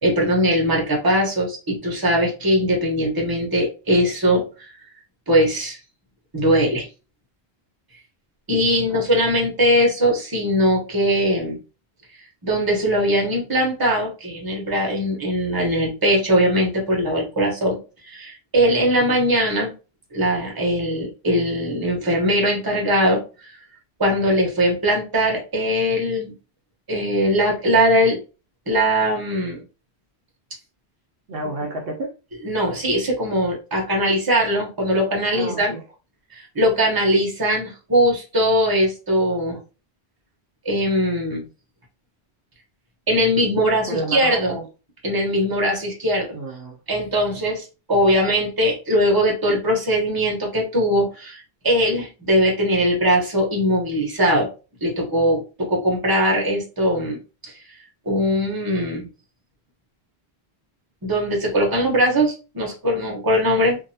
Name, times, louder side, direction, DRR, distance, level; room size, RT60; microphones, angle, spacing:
voice 1, 0.0-4.7 5.3-5.8 6.3-6.9 8.5-11.6 12.4-17.8 18.0-19.7 20.1-23.5 24.0-26.3 26.9-28.2 28.7-29.6 32.4-35.7 36.3-39.6 40.6-41.4 43.1-44.6 45.0-46.3 46.9-54.5 54.8-57.5 58.0-59.1 61.0-63.8, equal, 20° right, -1 dB, 0.9 m, -20 dB
voice 2, 8.6-9.0 31.3-32.1 35.3-35.8 43.9-44.7 46.3-46.8, right 2 dB, 65° right, 0 dB, 0.8 m, -30 dB
2.6 x 2.6 x 2.7 m, 0.32 s
omnidirectional pair, 1.1 m